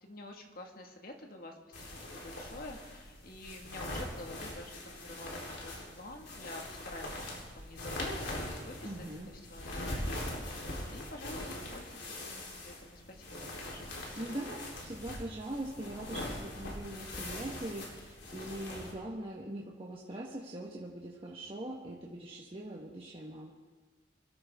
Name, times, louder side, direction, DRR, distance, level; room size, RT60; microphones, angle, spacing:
voice 1, 0.0-14.0, left 1 dB, 50° left, 2 dB, 1.9 m, -48 dB
sound 1, 1.7-18.9, left 1 dB, 80° left, 3.8 m, -42 dB
voice 2, 8.8-9.3 14.2-23.5, right 1 dB, 30° right, -4 dB, 1.5 m, -42 dB
25.0 x 14.0 x 3.7 m, 1.3 s
head